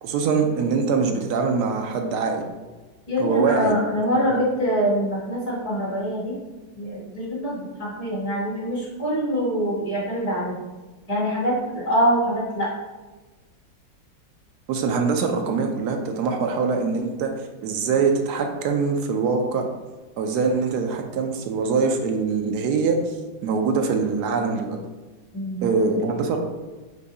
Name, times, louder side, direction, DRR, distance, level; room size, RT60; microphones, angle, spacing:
voice 1, 0.0-2.5 3.2-3.8 4.3-4.4 14.7-17.3 17.6-19.7 20.2-23.2 23.4-24.8 25.6-26.4, right 5 dB, 70° right, 3 dB, 1.0 m, -23 dB
voice 2, 3.1-6.3 6.7-10.6 11.1-12.7 25.3-25.7, equal, 20° left, -8 dB, 1.3 m, -24 dB
4.0 x 2.6 x 4.7 m, 1.2 s
omnidirectional pair, 2.1 m